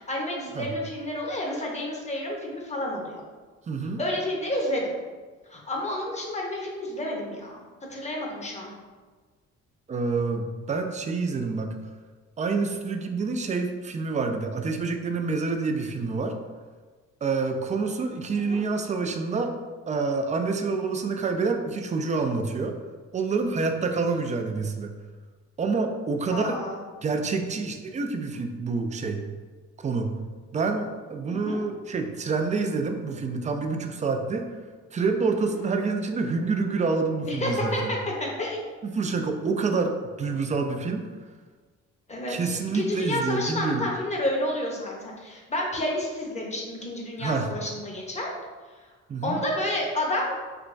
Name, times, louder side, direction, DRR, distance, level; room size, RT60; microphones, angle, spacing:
voice 1, 0.0-3.2 4.0-4.9 5.5-7.6 7.9-8.7 18.3-18.6 26.3-26.8 31.3-31.6 37.3-38.6 42.1-48.3 49.2-50.3, left 1 dB, 25° left, -1 dB, 0.8 m, -30 dB
voice 2, 3.7-4.0 9.9-11.7 12.4-16.3 17.2-19.5 19.9-22.7 23.1-24.9 25.6-26.6 27.0-29.2 29.8-30.1 30.5-34.4 34.9-37.9 38.8-41.0 42.3-43.9 47.2-47.5 49.1-49.4, right 4 dB, 25° right, 5 dB, 0.3 m, -27 dB
3.4 x 2.9 x 2.5 m, 1.4 s
cardioid pair, 90°, 30 cm